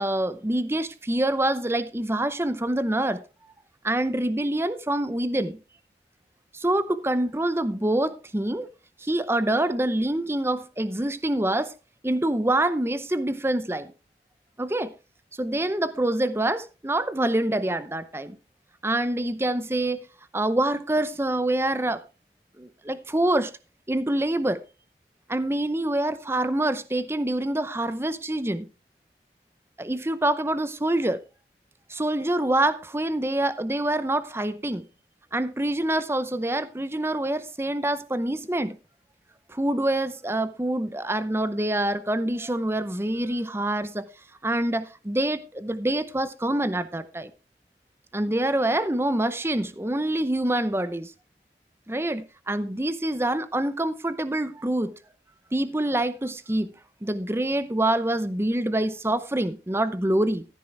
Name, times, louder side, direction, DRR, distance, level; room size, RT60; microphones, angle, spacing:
voice 1, 0.0-3.2 3.8-5.6 6.5-8.7 9.0-11.7 12.0-13.9 14.6-14.9 15.4-18.4 18.8-20.1 20.3-22.0 22.6-23.5 23.9-24.6 25.3-28.7 29.8-31.2 31.9-34.9 35.3-38.8 39.5-44.1 44.4-47.3 48.1-51.1 51.9-54.9 55.5-56.7 57.0-60.5, right 1 dB, 15° right, 0.7 m, -26 dB
14.5 x 9.2 x 3.3 m
head